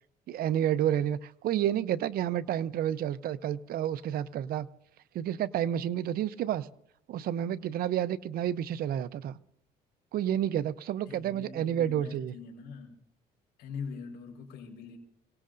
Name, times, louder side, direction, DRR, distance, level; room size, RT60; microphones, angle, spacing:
voice 1, 0.3-4.7 5.1-6.7 7.1-9.4 10.1-12.3, right 10 dB, 65° right, 15 dB, 0.7 m, -30 dB
voice 2, 11.1-13.0 13.6-15.0, left 5 dB, 80° left, 1 dB, 4.5 m, -42 dB
28.5 x 18.0 x 2.6 m, 0.74 s
cardioid pair, 110°, 17 cm